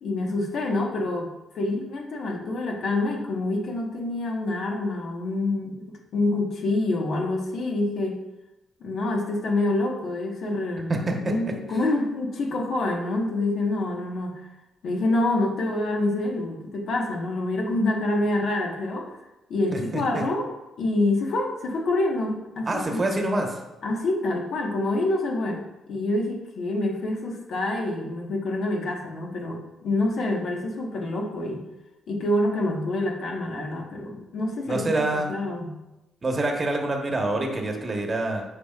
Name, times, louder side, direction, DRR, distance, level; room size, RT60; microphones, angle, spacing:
voice 1, 0.0-8.2 8.8-14.5 14.8-19.2 19.5-20.5 20.8-23.0 23.8-31.6 32.1-35.8, left 2 dB, 65° left, 0 dB, 1.4 m, -27 dB
voice 2, 19.7-20.2 22.7-23.6 34.7-35.3 36.2-38.4, right 2 dB, 30° right, 1 dB, 1.2 m, -26 dB
8.9 x 4.9 x 2.5 m, 0.96 s
cardioid pair, 90°, 0 cm